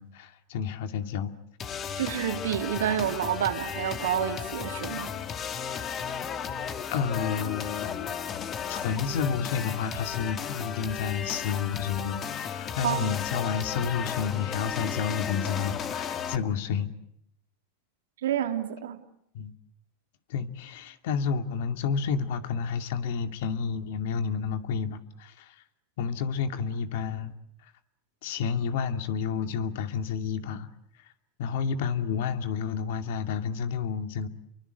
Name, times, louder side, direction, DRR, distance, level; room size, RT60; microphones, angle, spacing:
voice 1, 0.0-1.3 6.9-8.4 8.7-16.9 19.3-19.5 20.3-25.6 26.0-27.3 27.6-27.7 28.2-30.7 31.4-34.3, left 6 dB, 70° left, 8 dB, 2.4 m, -30 dB
sound 1, 1.6-16.4, left 7 dB, 35° left, 2.2 m, -34 dB
voice 2, 2.0-5.1 12.8-13.1 18.2-19.0, right 10 dB, 85° right, 6 dB, 3.1 m, -29 dB
29.5 x 24.0 x 8.2 m, 0.73 s
hypercardioid pair, 115°, 0 cm